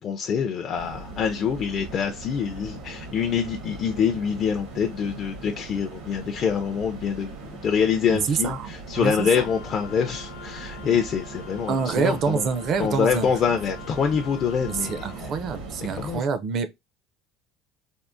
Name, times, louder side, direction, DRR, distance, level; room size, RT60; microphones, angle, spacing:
voice 1, 0.0-12.5 12.8-15.3 15.9-16.2, left 7 dB, 30° left, 0.4 m, -25 dB
sound 1, 0.7-16.2, right 3 dB, 90° right, 1.3 m, -40 dB
voice 2, 8.1-9.5 11.7-13.3 14.7-16.7, right 5 dB, 40° right, 0.4 m, -26 dB
Wind instrument woodwind instrument, 8.9-15.2, left 9 dB, 80° left, 0.6 m, -44 dB
3.5 x 2.4 x 2.5 m
cardioid pair, 165°, 0 cm